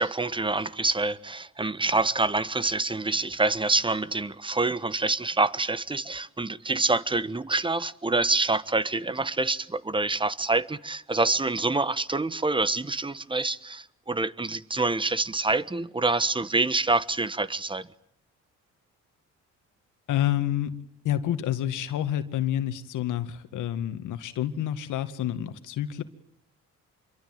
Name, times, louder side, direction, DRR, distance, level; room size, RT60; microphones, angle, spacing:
voice 1, 0.0-17.9, right 3 dB, 15° right, 1.3 m, -26 dB
voice 2, 20.1-20.7 21.0-26.0, left 11 dB, 80° left, 2.0 m, -28 dB
27.0 x 23.0 x 9.3 m
cardioid pair, 90°, 30 cm